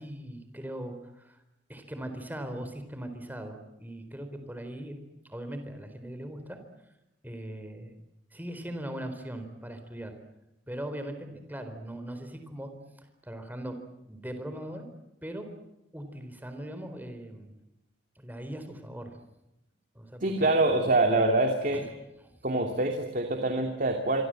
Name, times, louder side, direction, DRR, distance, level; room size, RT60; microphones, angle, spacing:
voice 1, 0.0-1.4 1.7-5.0 5.3-6.6 7.2-7.9 8.3-10.2 10.7-12.7 13.2-13.8 14.1-14.8 15.2-15.5 15.9-17.5 18.2-19.2 19.9-20.5 21.7-21.9 22.2-22.3, right 1 dB, 10° right, 7 dB, 4.1 m, -40 dB
voice 2, 20.2-21.8 22.4-24.2, right 2 dB, 50° right, 4 dB, 2.7 m, -25 dB
27.0 x 24.5 x 7.8 m, 0.89 s
head